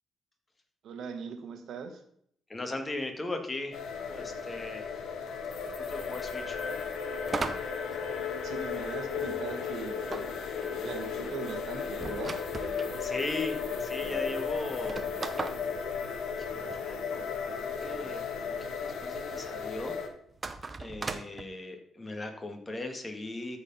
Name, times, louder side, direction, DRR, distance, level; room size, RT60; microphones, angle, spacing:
voice 1, 0.8-2.0 8.4-10.4 10.8-12.4, right 5 dB, 70° right, 7 dB, 1.5 m, -40 dB
voice 2, 2.5-4.9 5.6-6.6 12.8-15.0 16.3-17.3 17.6-18.2 18.5-20.0 20.8-23.6, left 2 dB, 25° left, 5 dB, 2.0 m, -38 dB
sound 1, 3.7-20.1, left 6 dB, 70° left, 1.5 m, -35 dB
sound 2, 7.3-8.8 10.1-12.9 13.7-13.8 14.0-14.1 14.7-16.9 20.3-21.4, right 4 dB, 30° right, 0.8 m, -38 dB
13.5 x 4.8 x 5.6 m, 0.67 s
cardioid pair, 90°, 0 cm